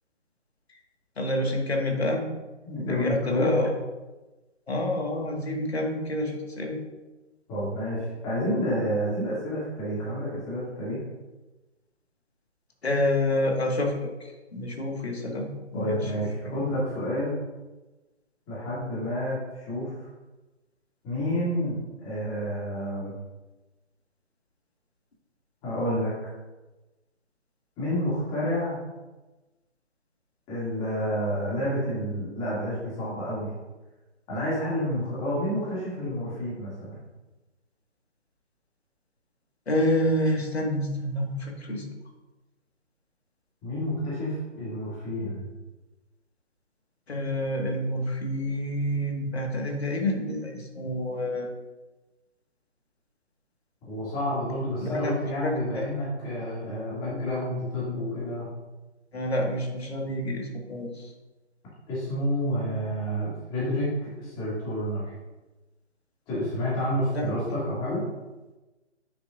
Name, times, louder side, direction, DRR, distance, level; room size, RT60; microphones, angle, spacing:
voice 1, 1.2-2.3 2.7-3.7 4.7-6.8 12.8-16.1 39.7-41.9 47.1-51.5 54.8-55.1 55.4-55.8 59.1-61.1 67.1-67.3, left 1 dB, 60° left, 1 dB, 1.9 m, -28 dB
voice 2, 2.7-3.6 7.5-11.0 15.7-17.4 18.5-19.9 21.0-23.1 25.6-26.3 27.8-28.8 30.5-33.5 34.3-37.0 43.6-45.5 53.9-58.5 61.9-65.1 66.3-68.0, equal, 15° left, -8 dB, 2.5 m, -29 dB
9.3 x 6.4 x 2.6 m, 1.1 s
figure-of-eight pair, 145°, 36 cm